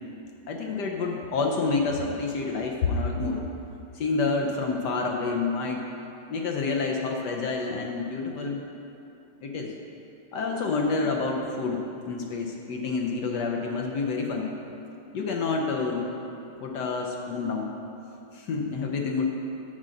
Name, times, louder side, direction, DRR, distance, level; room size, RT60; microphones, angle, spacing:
voice 1, 0.5-3.4 3.9-5.8 6.3-8.6 9.4-9.7 10.3-14.5 15.1-16.1 16.6-17.8 18.3-19.3, left 4 dB, 65° left, 1 dB, 1.1 m, -28 dB
7.4 x 6.3 x 6.5 m, 2.8 s
omnidirectional pair, 2.2 m